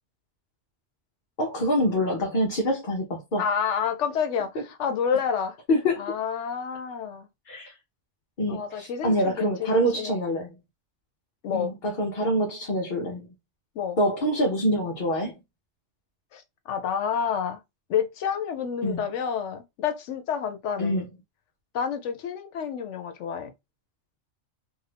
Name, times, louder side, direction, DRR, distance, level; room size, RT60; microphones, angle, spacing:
voice 1, 1.4-3.4 5.7-6.0 7.5-7.7 8.4-10.6 11.5-13.3 14.0-15.4 18.8-19.0 20.8-21.0, equal, 50° left, 0.8 m, -25 dB
voice 2, 3.4-5.6 6.0-7.3 8.5-10.2 11.4-11.7 13.7-14.0 16.3-17.6 17.9-21.0 21.7-23.5, left 7 dB, 80° left, 1.0 m, -29 dB
2.7 x 2.5 x 3.2 m
omnidirectional pair, 1.2 m